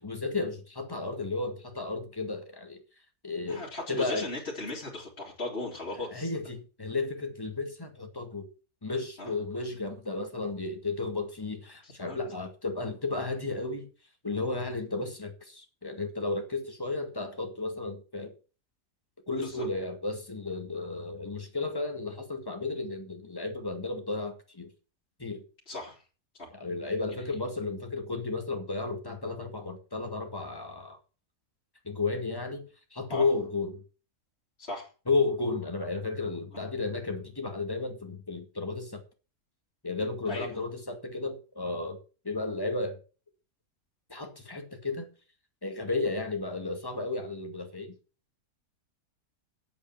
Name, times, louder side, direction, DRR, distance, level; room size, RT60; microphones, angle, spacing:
voice 1, 0.0-2.8 3.2-3.6 3.9-4.3 6.1-8.5 8.8-13.9 14.2-18.3 19.3-24.7 25.2-25.4 26.5-31.0 31.9-33.8 35.1-39.0 39.8-42.0 42.2-43.0 44.1-45.1 45.6-47.9, left 3 dB, 15° left, 2.0 m, -33 dB
voice 2, 3.5-6.3 9.2-9.3 11.8-12.2 19.4-19.7 25.7-26.0 26.4-26.5 27.2-27.3 33.1-33.3 34.6-34.9 40.3-40.5, left 2 dB, 40° left, 3.2 m, -37 dB
8.6 x 8.2 x 7.3 m
omnidirectional pair, 1.6 m